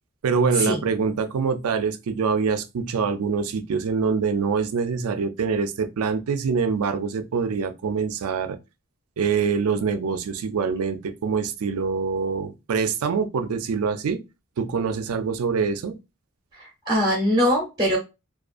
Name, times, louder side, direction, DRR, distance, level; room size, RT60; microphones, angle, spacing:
voice 1, 0.2-8.6 9.2-14.2 14.6-16.0, right 5 dB, 80° right, 0.4 m, -25 dB
voice 2, 16.6-18.0, equal, 20° right, 0.7 m, -22 dB
2.4 x 2.3 x 2.4 m
head